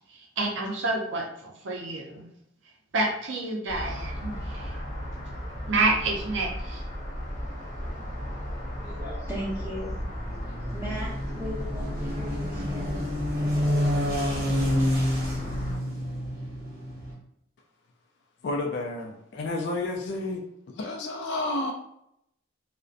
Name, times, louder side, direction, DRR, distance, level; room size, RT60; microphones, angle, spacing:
voice 1, 0.4-2.2 2.9-4.8 5.7-6.8, right 2 dB, 65° right, 0 dB, 0.5 m, -28 dB
sound 1, 3.7-15.8, equal, 35° left, 0.7 m, -35 dB
voice 2, 8.8-10.0 10.4-13.0 13.3-14.5 15.6-15.9, equal, 15° right, -9 dB, 0.7 m, -39 dB
sound 2, 9.5-17.1, left 1 dB, 45° right, 0.8 m, -29 dB
voice 3, 18.4-20.4 20.7-21.7, left 2 dB, 55° left, 1 dB, 0.3 m, -30 dB
2.5 x 2.1 x 2.4 m, 0.76 s
head